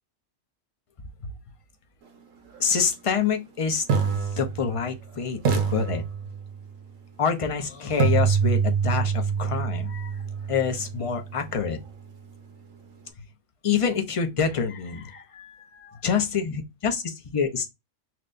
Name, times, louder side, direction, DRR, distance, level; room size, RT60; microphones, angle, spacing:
voice 1, 2.6-6.0 7.2-10.2 10.5-11.8 13.6-17.7, left 6 dB, 40° left, 0.5 m, -27 dB
sound 1, 2.8-2.9 3.9-5.1 5.4-6.7 8.0-11.9, right 6 dB, 85° right, 1.1 m, -26 dB
5.9 x 2.2 x 2.5 m
omnidirectional pair, 1.3 m